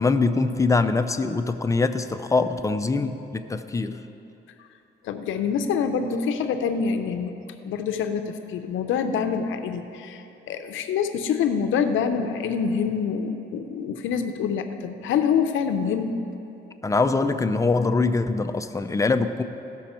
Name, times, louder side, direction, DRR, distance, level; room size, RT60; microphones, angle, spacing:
voice 1, 0.0-4.0 16.8-19.4, left 3 dB, 15° left, 8 dB, 0.5 m, -23 dB
voice 2, 5.0-7.4 7.6-16.2, left 6 dB, 80° left, 7 dB, 0.7 m, -26 dB
16.5 x 6.2 x 4.3 m, 3.0 s
cardioid pair, 90°, 20 cm